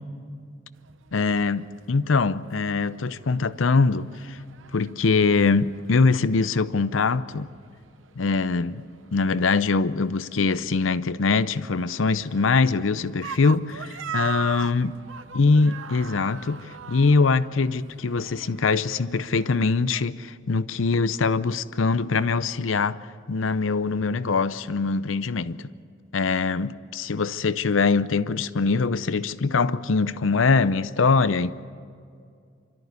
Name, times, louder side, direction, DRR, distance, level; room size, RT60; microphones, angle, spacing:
sound 1, 0.7-20.0, right 7 dB, 80° right, 0.7 m, -42 dB
voice 1, 1.1-4.4 4.7-7.5 8.2-8.8 9.1-14.9 15.3-23.0 23.3-25.7 26.1-31.5, left 4 dB, 85° left, 0.7 m, -23 dB
26.0 x 13.5 x 9.5 m
head